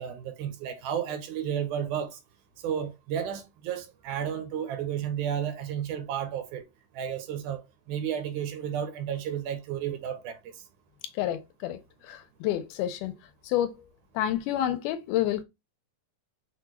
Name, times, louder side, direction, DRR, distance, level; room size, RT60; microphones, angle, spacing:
voice 1, 0.0-2.2 2.6-6.6 6.9-10.6, right 9 dB, 80° right, 1.9 m, -32 dB
voice 2, 11.2-11.8 12.1-13.1 13.5-13.7 14.2-15.4, left 12 dB, 85° left, 2.1 m, -28 dB
6.1 x 2.3 x 2.9 m
omnidirectional pair, 3.7 m